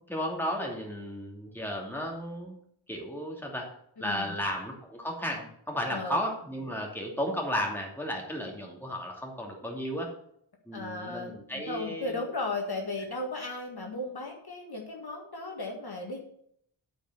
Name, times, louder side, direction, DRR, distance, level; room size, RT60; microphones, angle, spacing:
voice 1, 0.1-2.5 2.9-3.7 4.0-10.1 10.7-12.2, equal, 5° left, -1 dB, 2.6 m, -34 dB
voice 2, 4.0-4.4 5.9-6.2 10.7-16.2, left 2 dB, 50° left, 1 dB, 1.8 m, -36 dB
8.9 x 5.2 x 7.9 m, 0.67 s
wide cardioid pair, 115°, 49 cm